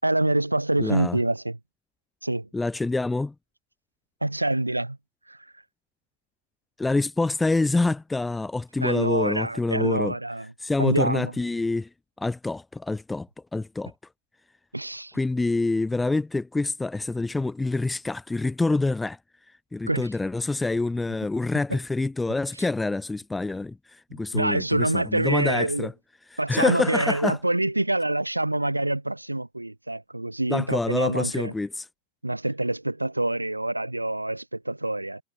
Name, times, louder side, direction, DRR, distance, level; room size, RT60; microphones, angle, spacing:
voice 1, 0.0-1.6 2.2-2.5 4.2-5.0 5.3-5.4 8.8-10.5 10.8-11.3 14.7-15.1 19.9-20.1 21.7-21.8 24.3-25.9 26.4-31.5 32.2-35.2, right 1 dB, 85° right, 5.9 m, -26 dB
voice 2, 0.8-1.2 2.5-3.3 6.8-10.1 10.6-11.9 12.2-13.9 15.1-19.2 19.7-25.9 26.3-27.4 30.5-31.8, left 3 dB, 10° left, 3.7 m, -26 dB
figure-of-eight pair, 90°, 0 cm